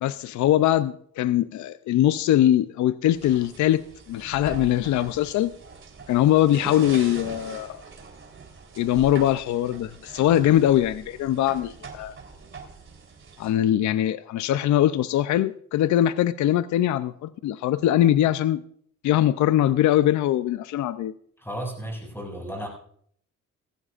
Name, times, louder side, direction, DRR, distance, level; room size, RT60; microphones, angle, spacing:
voice 1, 0.0-5.5 6.1-7.8 8.8-12.1 13.4-18.6 19.0-21.1, left 12 dB, 70° left, 0.5 m, -22 dB
sound 1, 3.2-13.5, right 5 dB, 40° right, 3.7 m, -42 dB
voice 2, 21.4-22.7, right 1 dB, 5° left, 7.2 m, -34 dB
19.5 x 15.5 x 2.5 m
cardioid pair, 90°, 30 cm